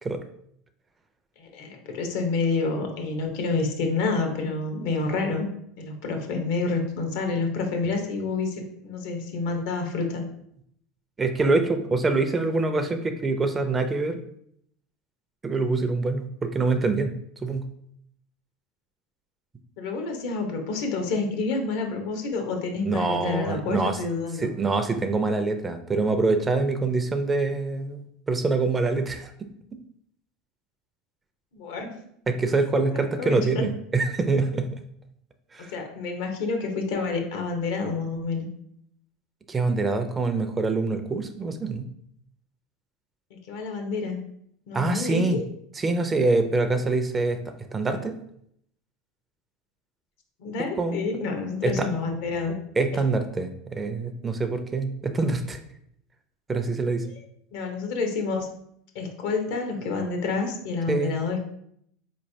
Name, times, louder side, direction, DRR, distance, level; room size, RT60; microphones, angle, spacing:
voice 1, 1.4-5.5 5.8-10.2 19.8-24.5 31.5-31.9 32.9-33.6 35.7-38.5 43.3-44.2 44.7-45.4 50.4-52.6 57.0-57.2 57.5-58.5 58.9-61.4, left 4 dB, 75° left, 3 dB, 0.8 m, -28 dB
voice 2, 11.2-14.2 15.4-17.2 17.4-17.7 22.9-24.0 24.4-28.0 28.3-29.3 32.3-34.7 35.5-35.7 39.5-41.9 44.7-45.4 45.8-47.4 47.7-48.2 50.8-51.2 51.6-51.9 52.8-55.6 56.5-57.0 60.9-61.2, right 3 dB, 20° right, 8 dB, 0.4 m, -25 dB
4.1 x 3.1 x 2.7 m, 0.71 s
supercardioid pair, 100°, 0 cm